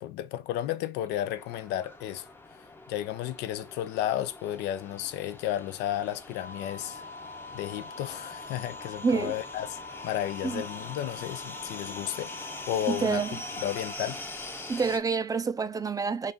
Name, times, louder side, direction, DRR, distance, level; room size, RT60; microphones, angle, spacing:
voice 1, 0.0-7.0 7.5-9.8 10.0-13.2 13.6-14.2, left 12 dB, 85° left, 0.5 m, -33 dB
sound 1, 1.2-15.0, left 2 dB, 15° left, 0.6 m, -43 dB
sound 2, 6.4-14.0, left 3 dB, 50° left, 0.9 m, -44 dB
voice 2, 9.0-9.3 10.4-10.6 12.9-13.4 14.7-16.3, right 5 dB, 20° right, 0.3 m, -28 dB
4.0 x 2.4 x 3.5 m
cardioid pair, 110°, 17 cm